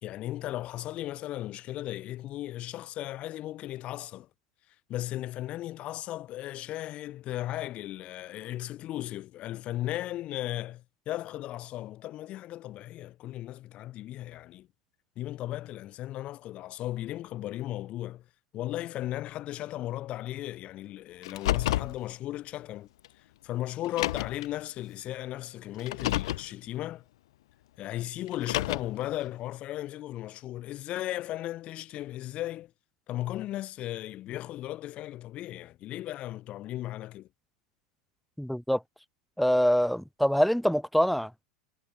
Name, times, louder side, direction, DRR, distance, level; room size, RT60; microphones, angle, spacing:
voice 1, 0.0-4.3 4.9-14.7 15.2-18.2 18.5-22.9 23.4-27.0 27.8-32.7 33.1-37.3, left 14 dB, 40° left, 1.2 m, -36 dB
Car, 21.2-22.0 23.0-23.1 23.8-24.5 25.8-26.5 28.3-29.0, left 15 dB, 65° left, 2.1 m, -30 dB
voice 2, 38.4-38.8 39.4-41.3, equal, ahead, 1.9 m, -24 dB
figure-of-eight pair, 85°, 3 cm